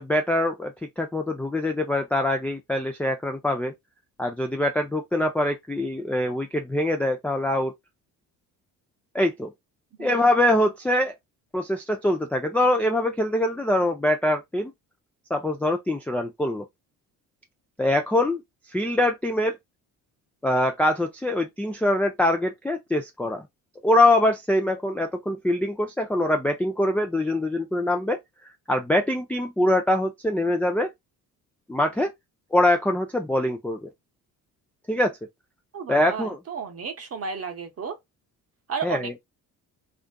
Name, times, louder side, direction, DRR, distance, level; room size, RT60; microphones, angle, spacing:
voice 1, 0.0-3.7 4.2-7.7 9.1-9.5 10.0-11.1 11.5-14.7 15.3-16.7 17.8-18.4 18.7-19.6 20.4-23.4 23.8-28.2 28.7-30.9 31.7-32.1 32.5-33.9 34.9-35.2 35.9-36.4 38.8-39.1, left 1 dB, 5° left, 0.4 m, -23 dB
voice 2, 35.7-38.0 38.7-39.2, right 6 dB, 30° right, 0.8 m, -33 dB
2.5 x 2.4 x 2.2 m
hypercardioid pair, 50°, 47 cm